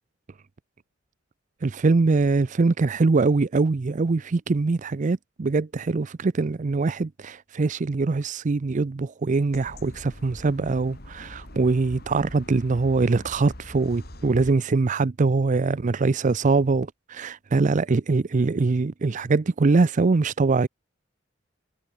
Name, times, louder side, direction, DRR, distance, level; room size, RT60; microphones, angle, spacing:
voice 1, 1.6-20.7, right 3 dB, 40° right, 0.5 m, -23 dB
sound 1, 9.5-14.5, left 1 dB, 55° left, 5.2 m, -43 dB
head